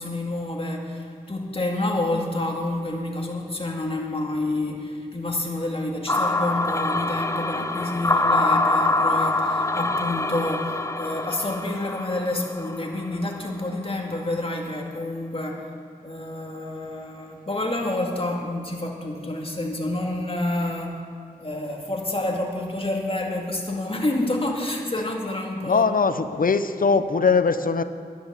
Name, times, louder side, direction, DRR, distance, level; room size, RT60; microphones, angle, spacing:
voice 1, 0.0-15.7 16.0-21.0 21.4-25.9, left 1 dB, 35° left, 0 dB, 2.1 m, -28 dB
sound 1, 6.1-13.2, left 2 dB, 20° left, 0.6 m, -24 dB
voice 2, 25.6-27.8, left 5 dB, 60° left, 10 dB, 0.7 m, -21 dB
11.0 x 10.5 x 6.8 m, 2.1 s
wide cardioid pair, 65°, 16 cm